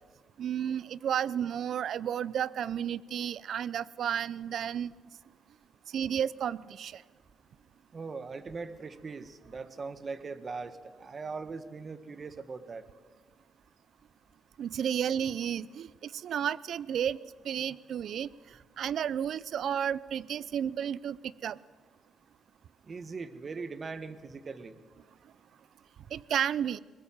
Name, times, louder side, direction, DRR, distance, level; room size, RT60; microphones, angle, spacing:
voice 1, 0.4-4.9 5.9-7.0 14.6-17.2 17.4-21.6 26.1-26.8, right 9 dB, 65° right, 20 dB, 0.6 m, -32 dB
voice 2, 7.9-12.8 22.8-24.8, right 4 dB, 40° right, 11 dB, 1.5 m, -40 dB
22.0 x 20.0 x 7.4 m, 1.5 s
cardioid pair, 90°, 0 cm